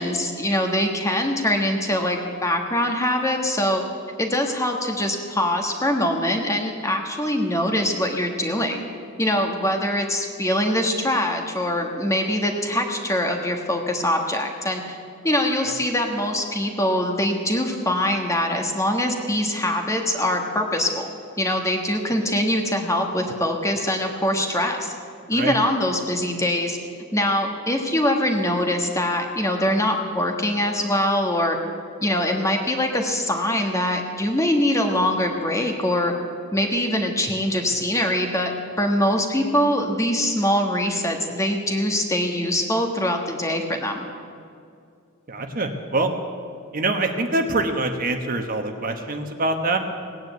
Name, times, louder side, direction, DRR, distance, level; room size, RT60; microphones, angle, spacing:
voice 1, 0.0-3.8 4.2-8.8 9.2-15.0 15.2-21.1 21.4-24.9 25.3-26.8 27.1-31.6 32.0-36.1 36.5-38.5 38.8-44.0, left 1 dB, 15° left, 3 dB, 1.4 m, -23 dB
voice 2, 45.3-46.1 46.7-49.8, right 2 dB, 40° right, 5 dB, 1.1 m, -24 dB
18.0 x 9.4 x 8.1 m, 2.4 s
head